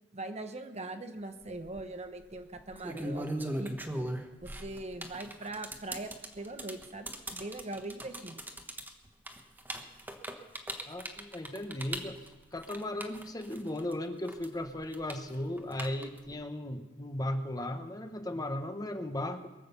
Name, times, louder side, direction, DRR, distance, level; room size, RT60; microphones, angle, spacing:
voice 1, 0.1-3.7 4.4-8.4, right 2 dB, 35° right, 7 dB, 1.0 m, -41 dB
sound 1, 1.5-1.8 2.6-13.9 14.2-16.3, right 1 dB, 10° right, 1.2 m, -39 dB
voice 2, 10.9-12.2 12.5-19.5, left 1 dB, 20° left, 7 dB, 1.1 m, -36 dB
22.5 x 7.6 x 7.0 m, 1.2 s
head